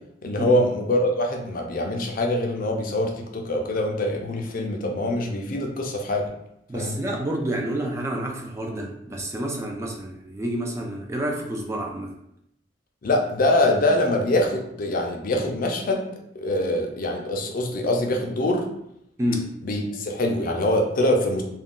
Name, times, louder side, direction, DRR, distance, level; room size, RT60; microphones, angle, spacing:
voice 1, 0.2-6.3 6.7-7.0 13.0-16.0 16.4-18.6 19.6-21.4, left 1 dB, 50° left, 2 dB, 0.5 m, -24 dB
voice 2, 6.7-12.1 19.2-19.5, right 1 dB, 15° right, 0 dB, 0.3 m, -29 dB
2.5 x 2.2 x 3.6 m, 0.76 s
head